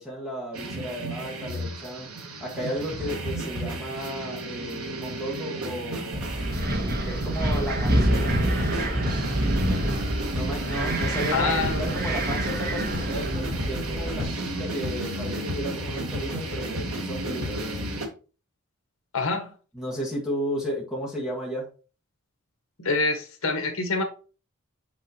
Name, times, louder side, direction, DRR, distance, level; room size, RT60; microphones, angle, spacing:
voice 1, 0.0-2.1 2.4-6.2 7.0-8.3 8.6-9.0 10.3-18.0 19.7-21.7, equal, ahead, 1.6 m, -34 dB
sound 1, 0.5-18.1, right 1 dB, 80° right, 1.6 m, -32 dB
Wind, 6.1-14.2, right 1 dB, 45° right, 1.3 m, -27 dB
voice 2, 11.3-11.8 19.1-19.5 22.8-24.0, left 3 dB, 70° left, 1.5 m, -26 dB
6.8 x 5.8 x 2.9 m
head